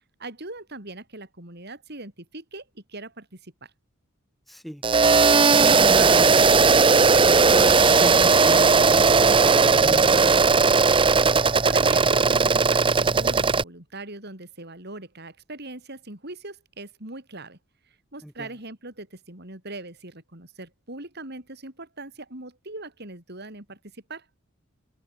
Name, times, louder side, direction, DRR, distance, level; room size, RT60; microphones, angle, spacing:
voice 1, 0.0-3.7 11.4-17.6 18.1-24.3, right 2 dB, 50° right, 5.3 m, -40 dB
voice 2, 4.5-4.8 5.5-10.7 18.2-18.5, equal, ahead, 2.9 m, -36 dB
sound 1, 4.8-13.6, right 4 dB, 25° right, 0.7 m, -17 dB
head